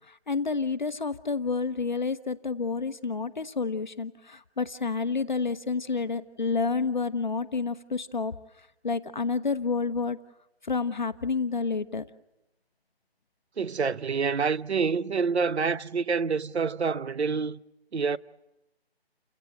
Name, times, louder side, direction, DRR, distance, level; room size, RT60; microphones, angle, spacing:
voice 1, 0.1-8.3 8.8-10.2 10.6-12.0, left 4 dB, 45° left, 0.9 m, -29 dB
voice 2, 13.6-17.6 17.9-18.2, right 5 dB, 90° right, 1.0 m, -27 dB
29.5 x 17.0 x 9.0 m
hypercardioid pair, 180°, 32 cm